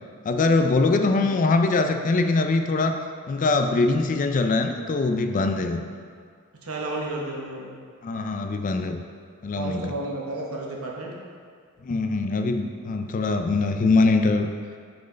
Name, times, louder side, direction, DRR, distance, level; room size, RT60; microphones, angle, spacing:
voice 1, 0.2-3.0 3.3-5.8 8.0-9.0 9.4-9.9 11.8-14.5, left 3 dB, 35° left, 6 dB, 0.3 m, -22 dB
voice 2, 1.0-1.3 6.6-7.8 9.6-11.1, right 2 dB, 70° right, -2 dB, 1.1 m, -32 dB
6.4 x 4.4 x 3.9 m, 2.1 s
head